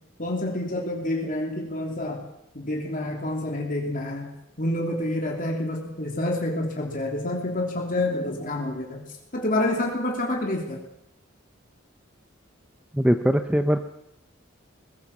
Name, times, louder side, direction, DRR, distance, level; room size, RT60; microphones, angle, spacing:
voice 1, 0.2-2.2 2.5-4.3 4.6-9.0 9.3-10.8, left 1 dB, 45° left, 0 dB, 3.1 m, -28 dB
voice 2, 12.9-13.8, equal, 5° right, 7 dB, 0.7 m, -21 dB
21.0 x 18.0 x 7.2 m, 0.81 s
head